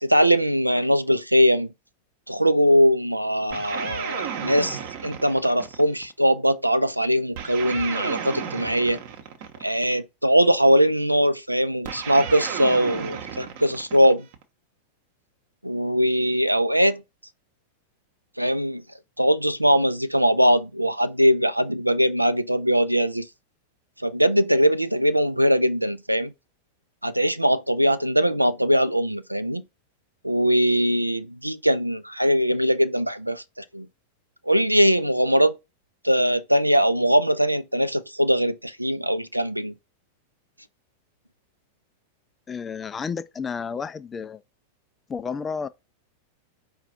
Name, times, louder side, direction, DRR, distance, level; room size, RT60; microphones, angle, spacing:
voice 1, 0.0-1.7 2.3-9.0 9.6-14.3 15.6-17.0 18.4-18.8 19.2-23.3 24.0-26.3 27.0-29.6 30.2-33.9 34.4-35.6 36.0-39.7, equal, 90° right, 0.3 m, -21 dB
sound 1, 3.5-6.1 7.4-9.9 11.9-14.4, right 8 dB, 50° right, 0.8 m, -33 dB
voice 2, 42.5-44.4 45.1-45.7, left 6 dB, 20° left, 0.3 m, -31 dB
4.8 x 2.3 x 4.0 m
figure-of-eight pair, 90°, 0 cm